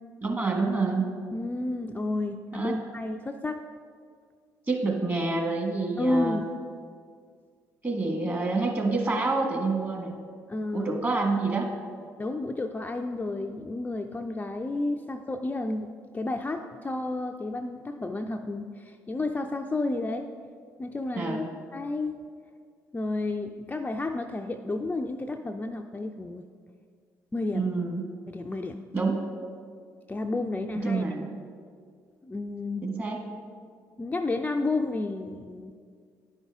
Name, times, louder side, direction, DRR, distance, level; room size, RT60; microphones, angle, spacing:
voice 1, 0.2-1.1 2.5-2.7 4.7-6.4 7.8-10.1 10.7-11.7 21.1-21.5 27.5-28.0 28.9-29.2 30.7-31.3 32.8-33.2, right 3 dB, 25° right, 1 dB, 1.6 m, -27 dB
voice 2, 1.3-3.6 6.0-6.4 10.5-11.1 12.2-20.3 20.8-21.4 21.7-22.2 22.9-26.4 27.3-27.7 28.3-28.8 30.1-31.0 32.2-32.9 34.0-35.7, left 2 dB, 20° left, 4 dB, 0.4 m, -31 dB
10.0 x 5.4 x 3.6 m, 2.1 s
hypercardioid pair, 50°, 8 cm